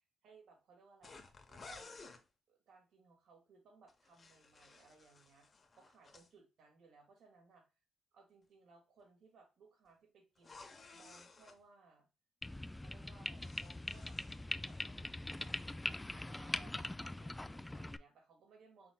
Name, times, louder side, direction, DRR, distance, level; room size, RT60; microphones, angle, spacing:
voice 1, 0.2-1.9 2.5-5.5 5.8-7.7 8.1-10.6 10.9-12.1 12.8-15.5 15.8-18.9, right 4 dB, 70° right, 3 dB, 1.9 m, -64 dB
sound 1, 1.0-2.2 3.9-6.3 10.4-11.6 13.0-14.9 15.2-15.6, left 3 dB, 35° left, 0.9 m, -56 dB
sound 2, 12.4-18.0, left 1 dB, 10° left, 0.3 m, -42 dB
5.9 x 3.5 x 2.2 m, 0.30 s
cardioid pair, 90°, 0 cm